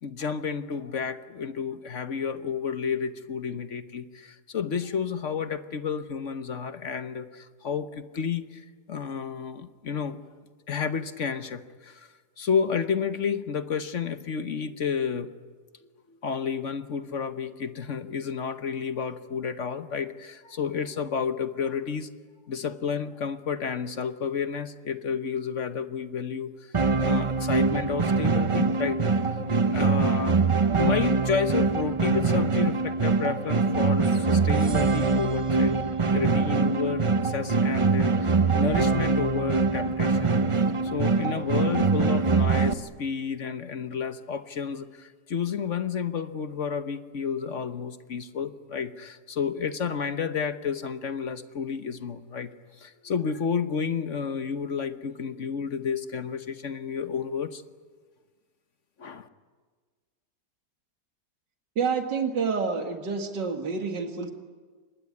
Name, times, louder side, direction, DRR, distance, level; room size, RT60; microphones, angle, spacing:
voice 1, 0.0-10.2 10.7-12.1 12.4-15.3 16.1-22.1 22.5-29.5 29.7-30.4 30.8-35.8 36.1-40.3 40.8-52.5 52.8-57.6 59.0-59.3, left 6 dB, 50° left, 10 dB, 1.2 m, -31 dB
sound 1, 26.7-42.7, right 4 dB, 45° right, 0.4 m, -23 dB
voice 2, 61.8-64.3, right 5 dB, 85° right, 5 dB, 2.5 m, -28 dB
25.0 x 20.5 x 9.7 m, 1.5 s
omnidirectional pair, 1.9 m